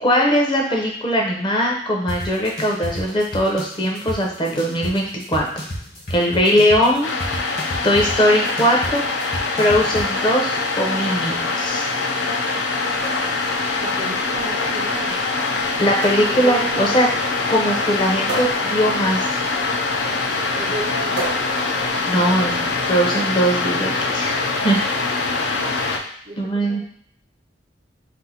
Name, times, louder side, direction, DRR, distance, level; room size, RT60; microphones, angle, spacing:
voice 1, 0.0-5.4 6.1-7.1 7.8-9.0 9.6-11.9 15.8-17.1 17.5-19.2 22.1-24.9 26.4-26.8, equal, 25° left, -1 dB, 0.5 m, -20 dB
sound 1, 2.1-10.1, equal, 50° left, 1.2 m, -31 dB
sound 2, 7.0-26.0, left 3 dB, 75° left, 0.4 m, -23 dB
sound 3, 13.0-22.7, right 2 dB, 85° right, 0.8 m, -36 dB
voice 2, 13.8-15.2 16.2-16.9 20.6-21.3 25.5-25.9 26.3-26.8, right 2 dB, 30° right, 1 dB, 0.4 m, -33 dB
2.7 x 2.4 x 4.1 m, 0.63 s
head